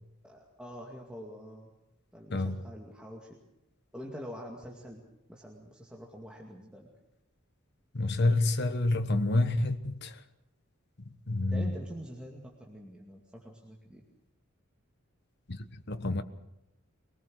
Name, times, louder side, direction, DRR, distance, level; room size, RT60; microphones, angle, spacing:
voice 1, 0.2-1.7 2.1-3.4 3.9-6.9 11.5-14.0, equal, 5° right, 2.3 m, -45 dB
voice 2, 2.3-2.6 7.9-10.1 11.3-11.7 15.5-15.6 15.9-16.2, left 2 dB, 50° left, 1.3 m, -28 dB
24.0 x 18.5 x 6.4 m
head